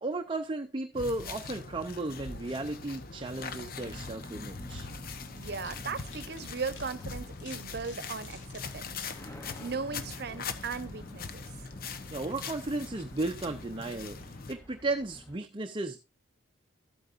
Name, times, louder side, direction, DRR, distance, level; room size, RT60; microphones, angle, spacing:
voice 1, 0.0-4.9 12.1-16.0, right 2 dB, 25° right, 0.6 m, -34 dB
sound 1, 0.9-14.5, left 4 dB, 50° left, 1.0 m, -42 dB
sound 2, 3.7-15.4, equal, 15° left, 0.8 m, -51 dB
sound 3, 4.3-9.8, left 4 dB, 70° left, 3.5 m, -56 dB
voice 2, 5.2-9.0 9.2-11.5, right 4 dB, 60° right, 0.9 m, -38 dB
13.0 x 8.7 x 2.6 m
head